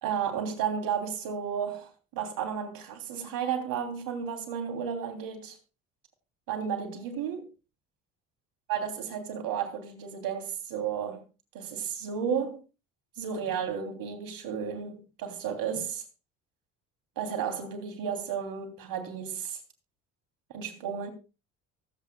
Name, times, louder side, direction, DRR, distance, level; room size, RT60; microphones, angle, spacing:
voice 1, 0.0-5.6 6.5-7.5 8.7-11.2 11.5-12.6 13.2-16.0 17.2-19.6 20.5-21.1, right 7 dB, 65° right, 3.0 m, -33 dB
24.0 x 8.2 x 2.3 m
supercardioid pair, 70°, 36 cm